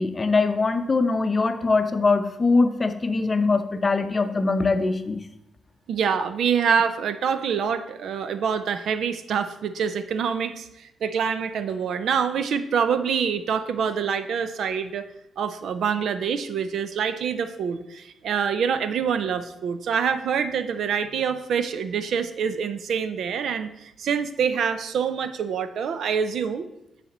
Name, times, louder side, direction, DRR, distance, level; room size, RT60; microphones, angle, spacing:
voice 1, 0.0-5.2, left 3 dB, 30° left, 9 dB, 0.6 m, -22 dB
voice 2, 5.9-15.1 15.4-26.7, right 7 dB, 75° right, 11 dB, 0.5 m, -26 dB
10.0 x 4.2 x 4.3 m, 0.86 s
cardioid pair, 90°, 0 cm